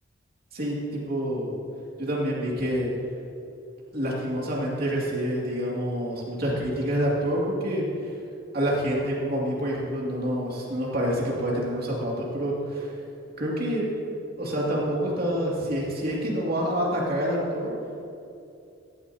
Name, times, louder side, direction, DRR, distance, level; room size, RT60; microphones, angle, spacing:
voice 1, 0.5-1.5 2.0-2.9 3.9-8.1 8.5-13.0 13.4-13.9 14.4-17.7, equal, 50° right, -4 dB, 2.5 m, -27 dB
14.5 x 11.5 x 2.8 m, 2.6 s
head